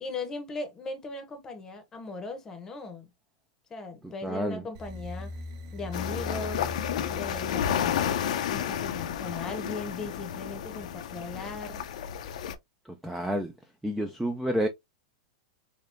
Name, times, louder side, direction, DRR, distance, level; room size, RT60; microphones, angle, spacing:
voice 1, 0.0-3.1 3.7-5.3 5.7-6.7 7.1-11.8, left 3 dB, 15° left, 0.8 m, -38 dB
voice 2, 4.0-4.6 12.9-13.5 13.8-14.7, equal, 5° right, 0.3 m, -30 dB
sound 1, 4.7-8.8, left 2 dB, 45° right, 0.8 m, -40 dB
sound 2, 5.9-12.5, left 9 dB, 70° left, 0.6 m, -31 dB
3.7 x 3.4 x 2.5 m
supercardioid pair, 165°, 4 cm